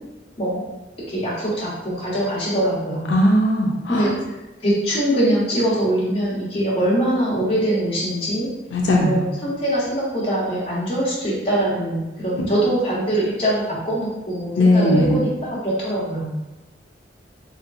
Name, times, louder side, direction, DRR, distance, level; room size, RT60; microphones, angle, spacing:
voice 1, 1.1-3.1 3.9-4.1 4.6-8.5 9.0-16.2, right 1 dB, 30° left, -7 dB, 1.1 m, -23 dB
voice 2, 3.1-4.1 8.7-9.3 12.4-12.5 14.6-15.2, left 1 dB, 90° left, -1 dB, 0.4 m, -18 dB
3.3 x 2.8 x 2.5 m, 1.1 s
head